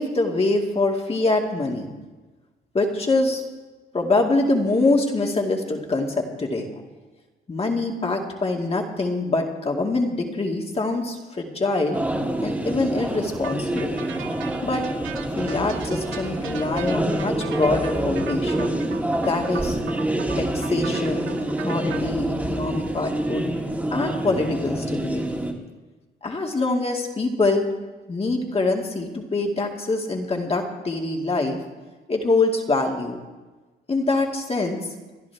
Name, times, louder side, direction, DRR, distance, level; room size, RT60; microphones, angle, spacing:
voice 1, 0.0-1.9 2.7-3.4 3.9-6.7 7.5-12.0 12.4-14.0 14.6-14.8 15.4-18.7 19.2-19.8 20.4-21.3 21.6-23.5 23.9-25.4 26.2-27.7 28.1-31.6 32.1-33.2 33.9-34.9, left 2 dB, 30° left, 1 dB, 2.3 m, -24 dB
sound 1, 11.9-25.5, right 1 dB, 10° right, 2.1 m, -27 dB
sound 2, 13.4-22.0, right 8 dB, 80° right, 0.9 m, -39 dB
28.5 x 10.5 x 3.5 m, 1.2 s
cardioid pair, 90°, 20 cm